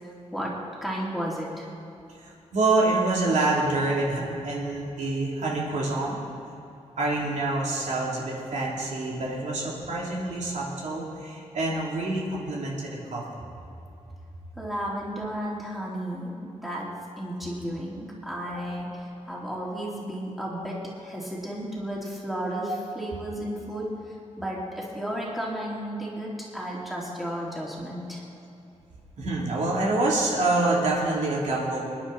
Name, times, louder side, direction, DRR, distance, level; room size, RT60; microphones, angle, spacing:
voice 1, 0.3-1.7 14.6-19.0 19.3-23.9 24.4-28.2, equal, ahead, -5 dB, 3.2 m, -33 dB
voice 2, 2.2-6.2 7.0-13.2 22.7-22.8 29.2-31.8, right 2 dB, 80° right, -4 dB, 3.3 m, -26 dB
26.0 x 10.5 x 4.3 m, 2.7 s
wide cardioid pair, 125°, 12 cm